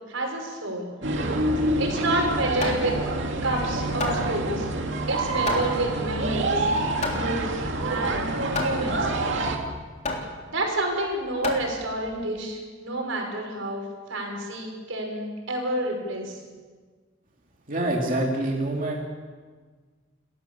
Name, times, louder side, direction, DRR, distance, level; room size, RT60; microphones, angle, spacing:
voice 1, 0.1-0.9 1.7-3.0 3.4-4.7 5.1-6.6 7.1-8.2 8.6-9.1 10.5-13.8 14.1-16.4, right 2 dB, 90° right, 1 dB, 5.8 m, -29 dB
sound 1, 1.0-9.6, right 2 dB, 65° right, 2.6 m, -27 dB
Hammer, 2.0-12.2, left 3 dB, 35° left, 3.5 m, -34 dB
voice 2, 17.7-19.0, right 1 dB, 45° right, -1 dB, 2.7 m, -26 dB
29.0 x 14.5 x 7.0 m, 1.5 s
head